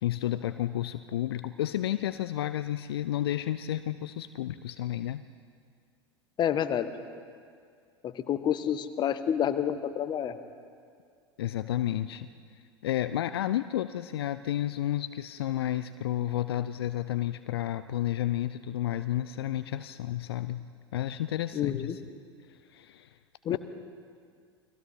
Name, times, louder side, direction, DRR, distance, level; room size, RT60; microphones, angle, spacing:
voice 1, 0.0-5.2 11.4-12.3 12.8-20.6 20.9-22.0 22.5-23.1 23.5-23.6, left 12 dB, 65° left, 13 dB, 0.6 m, -31 dB
voice 2, 6.4-6.9 8.0-10.4 21.5-22.0 23.4-23.6, left 9 dB, 30° left, 11 dB, 1.3 m, -28 dB
29.5 x 22.0 x 4.3 m, 2.2 s
figure-of-eight pair, 80°, 14 cm